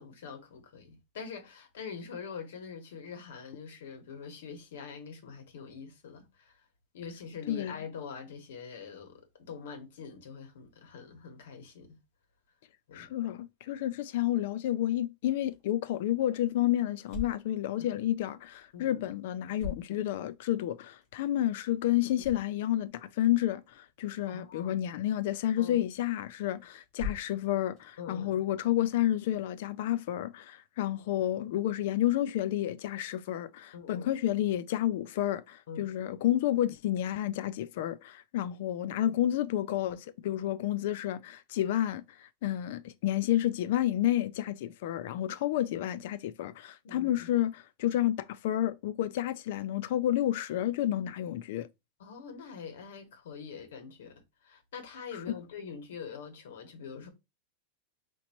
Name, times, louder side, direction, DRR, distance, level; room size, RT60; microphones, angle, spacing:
voice 1, 0.0-6.5 6.9-12.0 12.9-13.1 17.8-18.1 18.7-19.0 24.3-24.8 25.6-25.8 28.0-28.5 33.7-34.1 35.7-35.9 46.8-47.3 52.0-57.1, left 6 dB, 80° left, 1.4 m, -44 dB
voice 2, 12.9-51.7 55.1-55.4, left 13 dB, 55° left, 0.3 m, -30 dB
sound 1, 15.3-28.9, left 5 dB, 25° left, 2.6 m, -48 dB
5.2 x 2.9 x 3.0 m
supercardioid pair, 175°, 0 cm